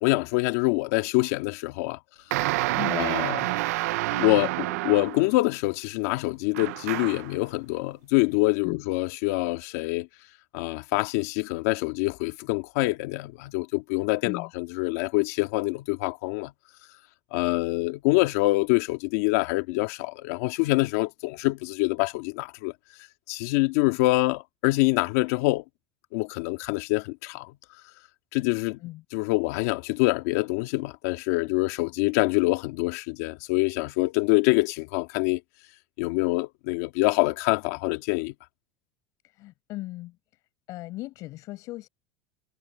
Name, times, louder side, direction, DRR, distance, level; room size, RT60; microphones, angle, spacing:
voice 1, 0.0-2.0 2.9-3.5 4.1-10.1 10.5-16.5 17.3-22.7 23.3-25.6 26.1-27.5 28.3-28.8 29.1-35.4 36.0-38.3, left 21 dB, 70° left, 2.2 m, -25 dB
sound 1, 2.3-5.3 6.5-7.3, right 19 dB, 85° right, 0.5 m, -28 dB
voice 2, 2.8-3.1 8.6-8.8 14.2-14.5 28.8-29.0 39.3-40.1 40.7-41.9, left 18 dB, 45° left, 6.1 m, -37 dB
cardioid pair, 165°, 8 cm